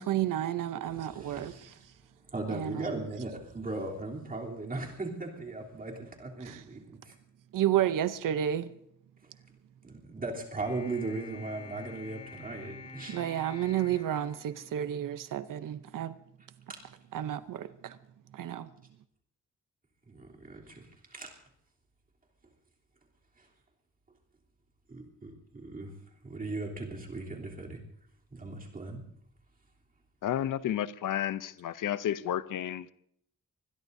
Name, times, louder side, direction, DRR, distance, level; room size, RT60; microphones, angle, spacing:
voice 1, 0.0-1.5 2.5-2.9 6.5-6.6 7.5-8.7 13.1-16.1 17.1-18.0 18.3-18.7, right 11 dB, 80° right, 0.7 m, -31 dB
voice 2, 0.9-1.8 2.3-7.2 9.2-9.3 9.8-13.2 16.7-16.9 20.1-21.4 23.4-23.5 24.9-26.0 26.2-27.8 28.3-29.0, right 2 dB, 25° right, 3.3 m, -38 dB
sound 1, 10.6-15.1, left 4 dB, 25° left, 3.4 m, -49 dB
voice 3, 30.2-32.9, left 11 dB, 75° left, 0.7 m, -31 dB
25.0 x 21.0 x 2.7 m
wide cardioid pair, 155°, 32 cm